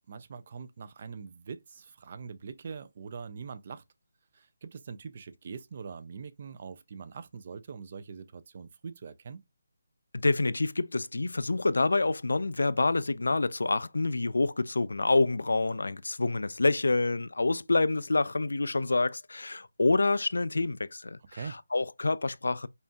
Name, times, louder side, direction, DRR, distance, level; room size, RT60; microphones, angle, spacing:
voice 1, 0.0-3.8 4.3-9.4 21.3-21.6, right 5 dB, 35° right, 0.4 m, -43 dB
voice 2, 10.1-21.2 21.7-22.7, left 3 dB, 85° left, 0.3 m, -27 dB
5.3 x 2.3 x 2.7 m
figure-of-eight pair, 170°, 0 cm